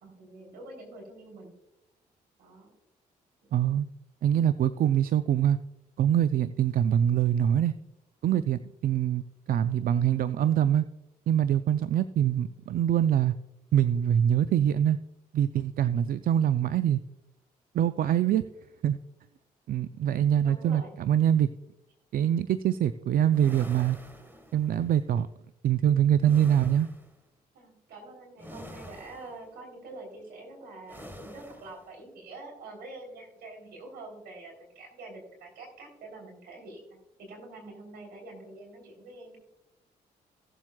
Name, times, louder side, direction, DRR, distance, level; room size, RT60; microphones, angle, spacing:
voice 1, 0.0-1.5 2.4-2.7 3.4-3.5 20.4-21.0 27.5-39.4, right 2 dB, 80° right, 1 dB, 3.4 m, -46 dB
voice 2, 3.5-3.9 4.2-5.6 6.0-7.7 8.2-9.2 9.5-10.9 11.3-13.3 13.7-15.0 15.3-17.0 17.7-18.4 18.8-19.0 19.7-21.5 22.1-24.0 24.5-25.3 25.6-26.9, right 10 dB, 60° right, 13 dB, 0.4 m, -24 dB
sound 1, 23.3-24.9 26.2-27.2 28.4-29.5 30.9-31.8, equal, 10° right, 1.5 m, -47 dB
16.5 x 7.4 x 2.3 m, 0.90 s
supercardioid pair, 55°, 16 cm